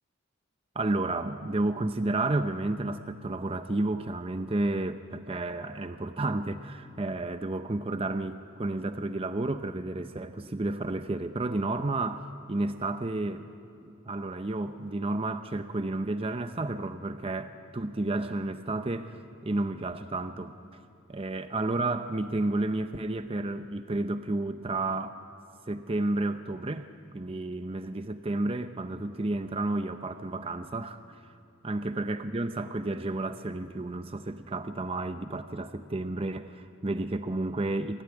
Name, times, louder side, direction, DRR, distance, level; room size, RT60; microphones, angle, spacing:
voice 1, 0.7-13.5 14.0-20.5 21.1-25.2 25.7-26.9 27.1-31.2 31.6-38.0, right 2 dB, 25° right, 9 dB, 0.6 m, -31 dB
26.5 x 15.5 x 9.7 m, 2.5 s
head